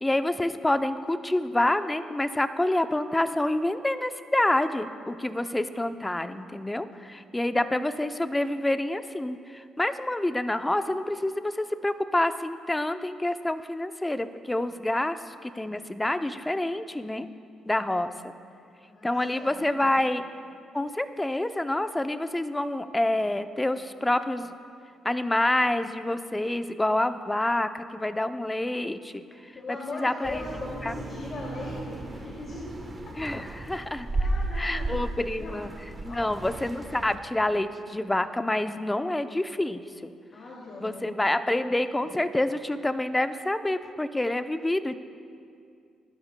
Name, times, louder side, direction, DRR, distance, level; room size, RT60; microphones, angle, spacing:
voice 1, 0.0-17.3 17.7-18.3 19.0-20.2 20.7-24.5 25.0-30.4 30.8-30.9 33.2-34.1 34.5-35.7 36.0-40.1 40.8-45.0, left 1 dB, 10° left, 10 dB, 0.5 m, -27 dB
voice 2, 18.8-19.9 29.5-32.8 33.2-33.4 34.1-34.9 35.4-35.6 36.1-36.3 40.3-41.1 42.0-42.1, left 2 dB, 50° left, -4 dB, 2.3 m, -39 dB
sound 1, 30.2-37.2, right 2 dB, 20° right, 1.1 m, -34 dB
20.0 x 12.0 x 2.2 m, 2.4 s
cardioid pair, 90°, 0 cm